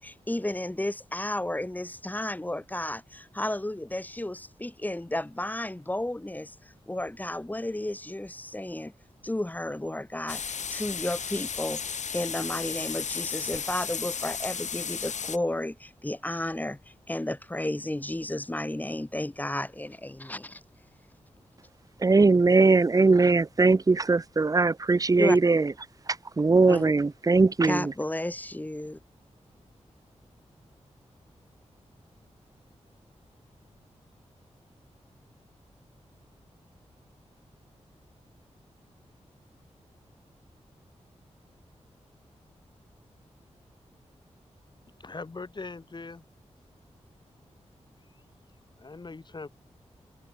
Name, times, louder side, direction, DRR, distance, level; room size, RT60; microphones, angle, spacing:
voice 1, 0.0-8.9 9.2-10.4 10.7-20.6 25.2-25.4 26.7-26.9 27.6-29.0, left 1 dB, 15° left, 5.8 m, -33 dB
sound 1, 10.3-15.4, left 6 dB, 85° left, 5.9 m, -34 dB
voice 2, 22.0-25.7 26.4-27.9, right 3 dB, 30° right, 0.8 m, -20 dB
voice 3, 45.0-46.2 48.8-49.5, left 3 dB, 40° left, 8.0 m, -40 dB
wide cardioid pair, 105°, 12 cm